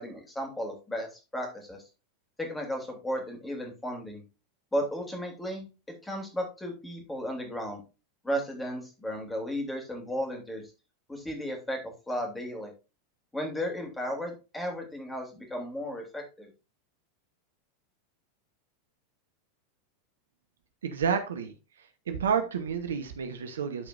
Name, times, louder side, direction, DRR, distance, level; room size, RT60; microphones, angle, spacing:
voice 1, 0.0-1.8 2.4-4.2 4.7-5.7 6.0-7.8 8.2-10.7 11.1-12.7 13.3-16.5, equal, 10° left, 2 dB, 3.1 m, -34 dB
voice 2, 20.8-21.5 22.1-23.9, right 7 dB, 70° right, 8 dB, 1.0 m, -30 dB
12.5 x 5.0 x 2.6 m, 0.30 s
figure-of-eight pair, 85°, 0 cm